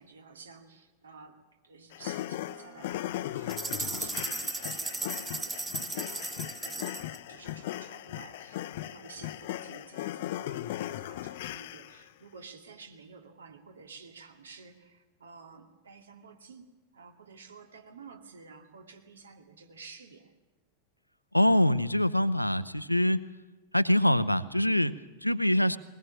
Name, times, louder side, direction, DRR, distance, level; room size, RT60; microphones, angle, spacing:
voice 1, 0.0-7.0 7.3-20.3, right 4 dB, 70° right, 6 dB, 2.5 m, -51 dB
sound 1, 1.9-12.1, left 14 dB, 55° left, 0.7 m, -38 dB
Wind instrument woodwind instrument, 2.2-7.2, right 8 dB, 40° right, 4.9 m, -56 dB
sound 2, 3.5-7.2, right 3 dB, 10° right, 1.5 m, -36 dB
voice 2, 21.3-23.3 23.7-25.8, left 1 dB, 90° left, 16 dB, 0.7 m, -24 dB
20.0 x 20.0 x 8.9 m, 1.1 s
figure-of-eight pair, 90°, 0 cm